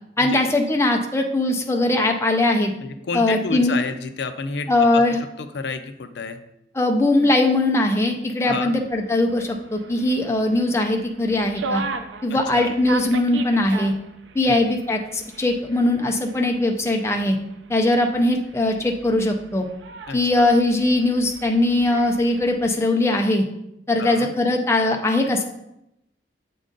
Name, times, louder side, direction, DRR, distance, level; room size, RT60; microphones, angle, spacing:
voice 1, 0.2-2.7 3.1-3.8 4.7-5.2 6.7-11.8 12.2-13.9 14.3-17.4 17.7-19.7 20.1-23.4 23.9-25.4, left 2 dB, 15° left, 3 dB, 0.5 m, -20 dB
voice 2, 2.8-5.0 5.4-6.4 8.5-8.7 12.3-12.8 14.5-14.6 20.1-20.5 24.0-24.3, left 4 dB, 70° left, 9 dB, 0.5 m, -30 dB
sound 1, 8.8-22.7, right 3 dB, 90° right, 0.5 m, -38 dB
7.3 x 3.8 x 3.8 m, 0.84 s
head